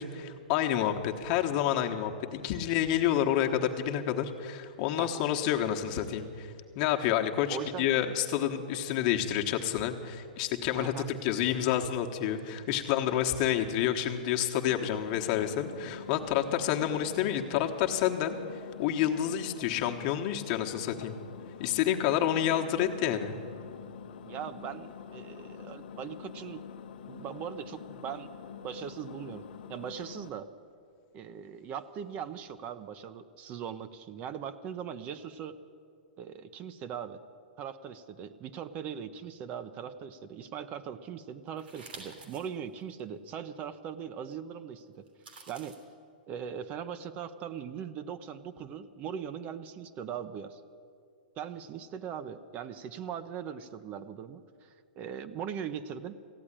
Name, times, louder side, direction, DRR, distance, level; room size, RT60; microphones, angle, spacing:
voice 1, 0.0-18.3 18.8-21.1 21.6-23.3, left 10 dB, 45° left, 4 dB, 1.2 m, -29 dB
voice 2, 7.5-7.9 10.7-11.1 24.3-26.6 27.1-28.3 28.6-30.5 31.1-35.6 36.2-37.2 37.6-45.0 45.5-45.8 46.3-50.6 51.4-56.1, right 8 dB, 30° right, 11 dB, 0.6 m, -40 dB
Engine, 14.7-30.3, left 7 dB, 65° left, 0.8 m, -46 dB
sound 1, 41.6-42.5 43.0-43.1 45.1-45.8, right 3 dB, 85° right, 3.4 m, -48 dB
15.5 x 8.6 x 10.0 m, 2.3 s
hypercardioid pair, 140°, 5 cm